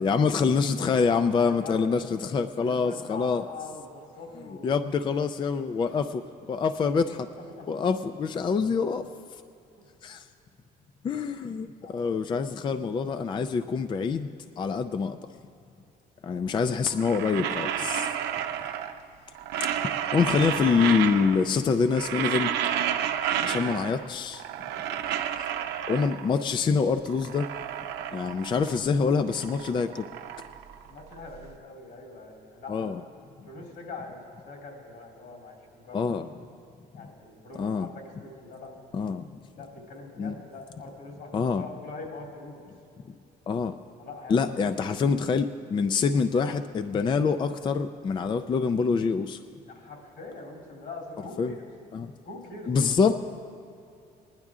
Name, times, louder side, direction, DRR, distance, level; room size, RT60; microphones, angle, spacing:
voice 1, 0.0-3.4 4.6-6.2 6.5-7.3 7.7-9.1 10.0-10.2 11.0-14.3 14.6-15.2 16.2-18.1 19.6-19.7 20.1-22.5 23.4-24.4 25.9-27.5 28.1-30.1 32.7-33.0 35.9-36.3 37.6-37.9 38.9-39.3 40.2-40.3 41.3-41.6 43.5-43.7 44.3-49.4 51.4-51.5 51.9-52.1 52.7-53.2, left 5 dB, 30° left, 10 dB, 0.4 m, -25 dB
voice 2, 1.4-1.8 2.6-4.8 5.8-6.0 7.3-7.6 9.8-9.9 11.1-11.2 11.8-12.1 16.2-16.6 17.9-18.4 24.6-24.8 30.9-32.9 33.4-36.1 36.9-38.7 39.5-42.6 44.0-44.8 49.7-51.6 52.2-52.9, left 3 dB, 75° left, -1 dB, 3.2 m, -43 dB
sound 1, 16.9-19.1 19.3-21.5 21.8-24.1 24.3-26.4 26.9-28.9 29.2-31.4, right 10 dB, 80° right, 0.6 m, -31 dB
19.5 x 10.5 x 3.6 m, 2.7 s
cardioid pair, 110°, 17 cm